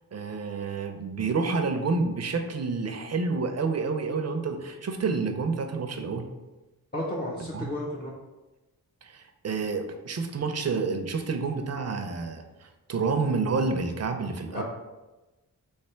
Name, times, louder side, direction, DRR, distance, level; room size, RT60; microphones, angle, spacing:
voice 1, 0.1-6.3 7.5-7.7 9.0-14.6, right 4 dB, 45° right, 5 dB, 0.5 m, -29 dB
voice 2, 6.9-8.1 14.5-14.6, left 1 dB, 25° left, -4 dB, 0.6 m, -32 dB
3.3 x 3.2 x 4.3 m, 1.1 s
wide cardioid pair, 130°, 35 cm